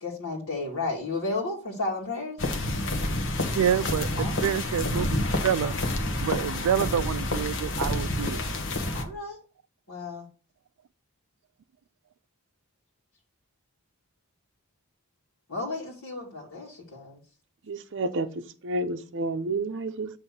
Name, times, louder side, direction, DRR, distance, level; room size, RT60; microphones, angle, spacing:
voice 1, 0.0-2.4 4.2-4.4 8.9-9.4 9.9-10.3 15.5-17.2, left 3 dB, 80° left, 1.8 m, -33 dB
sound 1, 2.4-9.0, left 1 dB, 60° left, 1.1 m, -28 dB
voice 2, 3.5-5.2 5.4-5.7 6.2-8.4, right 9 dB, 85° right, 0.3 m, -27 dB
voice 3, 17.6-20.1, right 2 dB, 60° right, 0.7 m, -30 dB
7.4 x 3.2 x 5.8 m
head